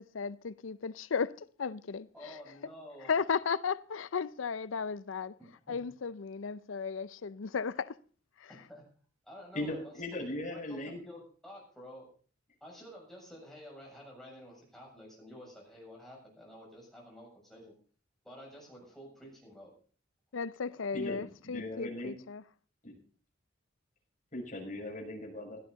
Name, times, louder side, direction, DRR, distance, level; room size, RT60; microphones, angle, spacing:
voice 1, 0.0-2.3 3.1-5.3 5.7-8.0 8.4-8.5 20.3-22.4, left 5 dB, 80° left, 0.5 m, -35 dB
voice 2, 2.1-3.1 5.7-5.8 8.5-8.8 9.2-9.9 10.5-12.1 12.6-17.7 18.2-19.7 20.7-21.0, equal, ahead, 7.2 m, -50 dB
voice 3, 9.5-11.0 20.9-22.1 22.8-22.9 24.3-25.6, left 1 dB, 40° left, 6.3 m, -39 dB
17.0 x 13.0 x 4.1 m
head